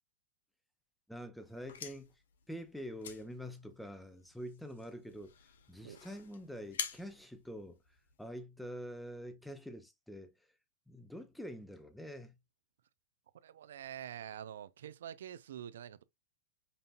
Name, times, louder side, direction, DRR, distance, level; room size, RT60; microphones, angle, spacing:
voice 1, 1.1-2.1 2.5-5.3 5.7-7.8 8.2-10.3 10.9-12.4, equal, ahead, 0.6 m, -46 dB
sound 1, 1.4-8.3, left 8 dB, 85° left, 0.9 m, -48 dB
voice 2, 13.4-16.0, right 10 dB, 80° right, 0.5 m, -46 dB
5.3 x 2.8 x 2.5 m
supercardioid pair, 150°, 0 cm